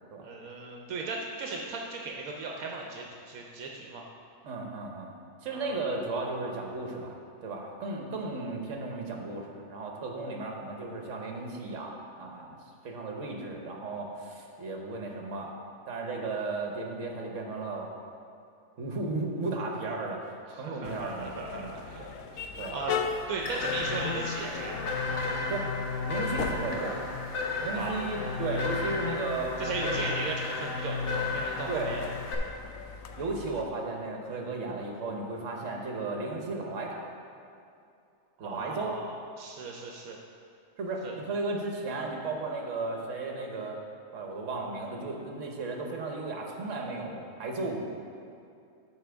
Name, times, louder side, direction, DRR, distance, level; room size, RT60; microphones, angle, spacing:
voice 1, 0.2-4.0 5.5-6.0 20.5-22.0 22.3-24.8 27.7-28.0 29.6-32.1 38.4-40.2 41.0-41.1, right 3 dB, 80° right, 0 dB, 1.1 m, -37 dB
voice 2, 4.4-7.1 7.4-12.6 12.8-15.5 15.9-17.9 18.8-22.1 22.6-22.8 25.5-25.7 26.1-27.1 27.6-30.0 31.7-31.9 33.2-37.1 38.4-39.0 40.8-43.8 44.1-48.0, right 3 dB, 65° right, 1 dB, 1.3 m, -35 dB
sound 1, 20.8-33.6, left 6 dB, 80° left, 1.0 m, -40 dB
sound 2, 23.4-32.4, left 4 dB, 60° left, 1.2 m, -33 dB
13.0 x 5.0 x 3.5 m, 2.5 s
omnidirectional pair, 1.5 m